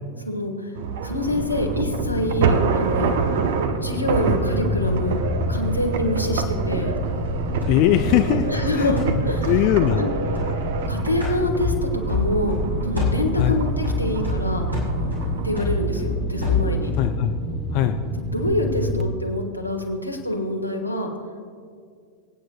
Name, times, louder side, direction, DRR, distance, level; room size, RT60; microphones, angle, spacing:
voice 1, 0.2-0.7 1.0-3.2 3.8-5.2 5.5-6.9 8.5-9.0 9.2-9.5 10.0-10.1 10.9-14.7 15.4-16.9 18.3-21.1, left 1 dB, 90° left, 1 dB, 1.5 m, -26 dB
sound 1, 0.7-15.6, right 5 dB, 55° right, 0.8 m, -28 dB
sound 2, 1.2-19.0, right 1 dB, 25° right, 1.1 m, -28 dB
sound 3, 7.6-10.8 11.2-12.7 12.9-17.1, left 4 dB, 85° right, 3.5 m, -28 dB
voice 2, 7.7-8.5 8.8-8.9 9.5-10.1 13.4-13.6 17.0-17.3 17.7-17.9, left 12 dB, 45° left, 7 dB, 0.5 m, -20 dB
25.5 x 9.0 x 2.3 m, 2.1 s
figure-of-eight pair, 90°, 0 cm